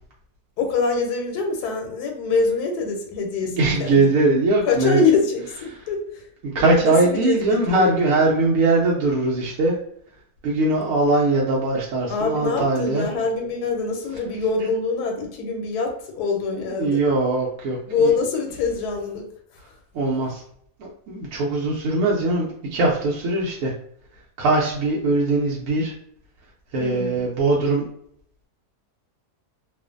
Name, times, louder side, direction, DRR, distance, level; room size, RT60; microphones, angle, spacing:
voice 1, 0.6-4.1 4.7-6.3 6.8-7.9 12.1-17.0 17.9-19.3 19.7-19.8 26.8-27.2, left 4 dB, 85° left, 3 dB, 1.1 m, -24 dB
voice 2, 3.4-5.0 5.7-5.8 6.5-9.8 10.4-13.1 16.7-18.1 19.9-20.4 20.8-23.7 24.4-25.9 26.7-27.8, right 2 dB, 70° right, -4 dB, 0.9 m, -21 dB
2.5 x 2.4 x 2.4 m, 0.66 s
omnidirectional pair, 1.6 m